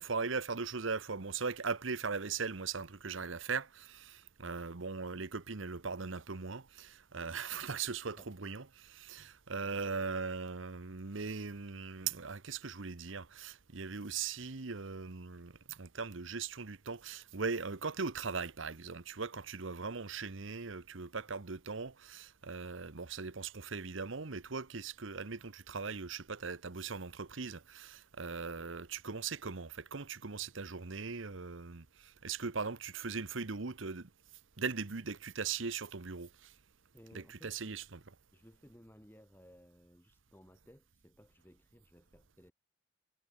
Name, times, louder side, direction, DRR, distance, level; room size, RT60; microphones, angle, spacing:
voice 1, 0.0-34.1 34.6-36.5 37.1-38.0, right 5 dB, 75° right, 1.1 m, -39 dB
voice 2, 36.9-37.8 38.3-42.5, equal, 10° left, 4.0 m, -59 dB
head